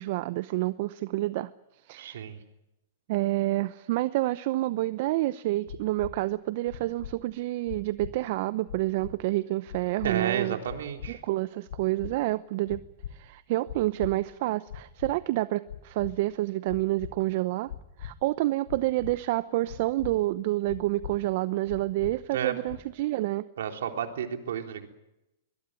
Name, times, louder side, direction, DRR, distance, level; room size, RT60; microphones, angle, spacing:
voice 1, 0.0-1.5 1.9-2.2 3.1-10.6 11.1-12.8 13.1-17.7 18.0-23.5, right 17 dB, 55° right, 15 dB, 0.8 m, -28 dB
voice 2, 2.0-2.4 10.0-11.2 22.3-22.5 23.6-24.9, right 8 dB, 70° right, 4 dB, 3.6 m, -31 dB
sound 1, 5.7-6.1 6.7-7.1 7.7-8.1 8.7-9.1 9.7-10.1 10.7-11.1 11.7-12.1 12.7-13.1 13.7-14.1 14.7-15.1 15.7-16.1 16.7-17.1 17.7-18.1 18.7-19.1 19.7-20.1 20.7-21.1 21.7-22.1 22.7-23.0, left 11 dB, 70° left, 4.5 m, -40 dB
22.5 x 21.5 x 9.1 m, 0.94 s
hypercardioid pair, 120°, 0 cm